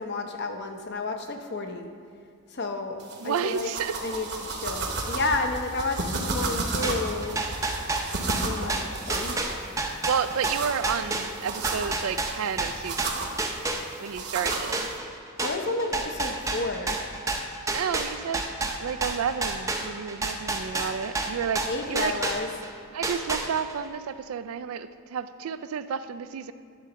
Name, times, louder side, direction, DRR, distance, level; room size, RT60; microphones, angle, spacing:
voice 1, 0.0-1.9 2.5-3.0 3.2-3.7 4.0-7.4 8.4-9.4 15.4-17.0 21.7-22.5, left 3 dB, 50° left, 4 dB, 0.8 m, -31 dB
sound 1, 3.0-15.0, right 3 dB, 50° right, 1.0 m, -34 dB
voice 2, 3.2-4.0 10.0-13.4 14.0-14.9 17.7-18.4 18.8-22.2 22.9-26.5, right 7 dB, 70° right, 13 dB, 0.4 m, -31 dB
sound 2, 6.8-14.1 14.5-22.7 23.0-23.8, right 3 dB, 15° right, 0.6 m, -30 dB
10.5 x 4.1 x 6.2 m, 2.4 s
head